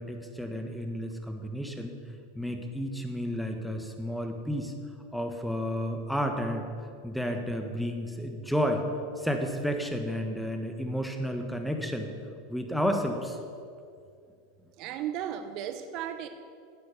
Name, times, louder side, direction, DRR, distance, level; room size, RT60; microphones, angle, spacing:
voice 1, 0.0-1.9 2.3-4.7 5.1-6.7 7.0-8.8 9.2-12.1 12.5-13.4, equal, ahead, 4 dB, 1.4 m, -31 dB
voice 2, 14.8-16.3, right 10 dB, 50° right, 9 dB, 0.7 m, -35 dB
10.5 x 8.6 x 6.7 m, 2.4 s
hypercardioid pair, 90°, 0 cm